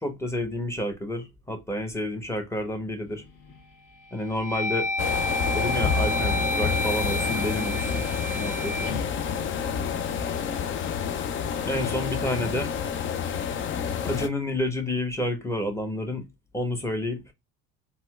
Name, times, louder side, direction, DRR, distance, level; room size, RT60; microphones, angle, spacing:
voice 1, 0.0-3.2 4.1-4.9 5.5-8.0 8.3-8.9 11.7-12.7 14.0-16.3 16.5-17.2, left 1 dB, 5° left, 1.0 m, -29 dB
sound 1, 3.1-3.6 4.1-10.3, left 1 dB, 75° left, 1.1 m, -31 dB
sound 2, 5.0-14.3, left 7 dB, 30° left, 0.4 m, -28 dB
4.1 x 2.2 x 2.3 m
hypercardioid pair, 70°, 44 cm